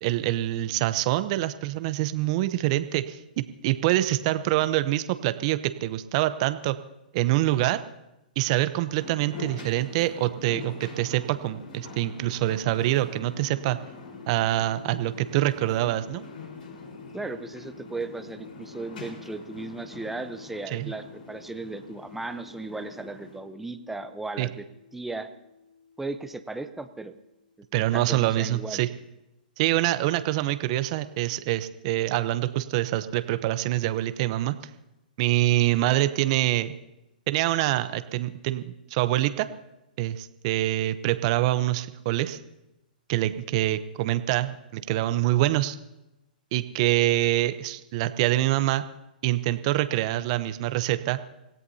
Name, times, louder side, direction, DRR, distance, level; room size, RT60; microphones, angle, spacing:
voice 1, 0.0-6.8 7.1-7.8 8.4-13.8 14.3-16.3 20.7-20.9 24.4-24.5 27.7-28.9 29.6-34.5 35.2-36.7 37.3-38.6 38.9-39.5 40.0-42.4 43.1-45.8 46.5-48.8 49.2-51.2, right 15 dB, 45° right, 12 dB, 0.8 m, -25 dB
sound 1, 8.9-23.4, left 3 dB, 70° left, 4.4 m, -44 dB
sound 2, 14.1-28.0, left 5 dB, 45° left, 2.8 m, -50 dB
voice 2, 17.1-24.7 24.9-25.3 26.0-27.2 27.9-28.8, right 3 dB, 5° right, 9 dB, 0.8 m, -36 dB
25.5 x 16.5 x 2.8 m, 0.94 s
hypercardioid pair, 130°, 5 cm